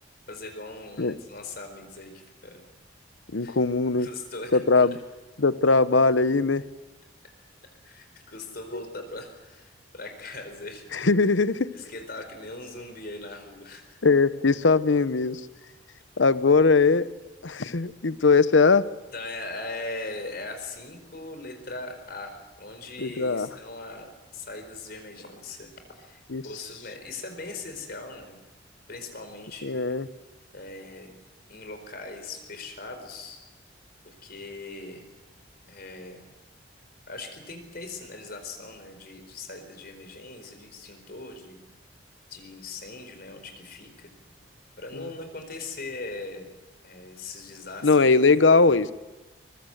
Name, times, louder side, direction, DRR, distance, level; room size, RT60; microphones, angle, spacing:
voice 1, 0.3-2.6 3.4-3.6 4.0-5.0 7.8-10.9 11.7-14.0 19.1-28.4 28.9-29.9 30.5-31.1 31.5-33.4 34.0-35.0 35.7-36.2 37.1-41.6 42.3-44.1 44.8-46.5 46.8-48.1, left 2 dB, 55° left, 7 dB, 4.5 m, -40 dB
voice 2, 3.3-4.1 4.5-5.0 5.4-6.6 8.7-8.8 10.9-11.7 14.0-15.4 16.2-17.1 17.4-18.9 23.0-23.5 26.3-26.4 29.6-30.1 44.9-45.1 47.8-48.9, left 4 dB, 80° left, 15 dB, 0.9 m, -20 dB
23.5 x 22.5 x 7.9 m, 1.1 s
head